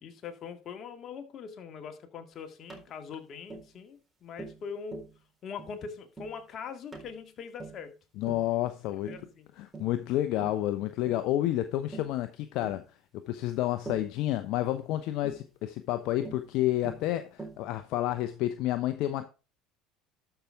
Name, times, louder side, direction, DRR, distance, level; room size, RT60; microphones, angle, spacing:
voice 1, 0.0-5.1 5.4-7.9 9.0-9.5, left 6 dB, 50° left, 1.9 m, -42 dB
Tap, 2.7-2.9 3.5-3.7 4.4-4.6 4.9-5.1 5.6-5.8 6.2-6.4 6.9-7.1 7.6-7.8 8.3-8.5 9.1-9.3 9.7-10.0 10.4-10.6 11.1-11.3 11.9-12.2 12.6-12.8 13.9-14.1 15.2-15.4 16.2-16.5 16.8-17.1 17.4-17.6, right 3 dB, 20° right, 3.9 m, -43 dB
voice 2, 8.2-9.1 9.6-12.8 13.1-19.3, left 14 dB, 65° left, 0.7 m, -30 dB
12.5 x 5.8 x 3.6 m
hypercardioid pair, 80°, 0 cm